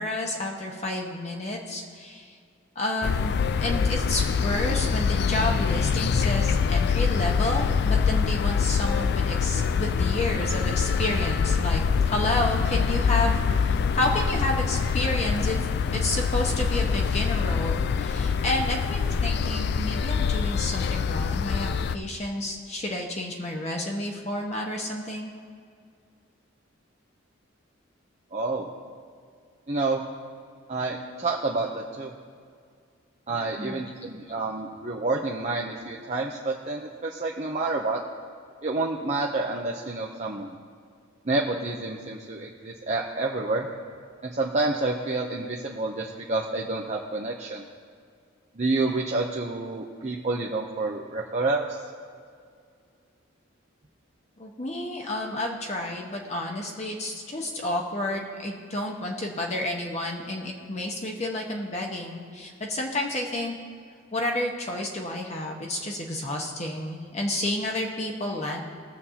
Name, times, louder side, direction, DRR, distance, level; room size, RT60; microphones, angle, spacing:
voice 1, 0.0-2.4 2.7-15.6 15.9-25.3 33.6-33.9 54.4-63.5 64.1-68.6, left 1 dB, 35° left, 0 dB, 1.1 m, -30 dB
sound 1, 3.0-22.0, left 6 dB, 55° left, 0.3 m, -25 dB
voice 2, 28.3-28.7 29.7-30.0 30.7-32.1 33.3-38.0 38.6-40.6 41.3-43.7 44.2-47.6 48.6-51.7, right 3 dB, 35° right, -2 dB, 0.7 m, -28 dB
20.0 x 7.4 x 2.8 m, 2.2 s
head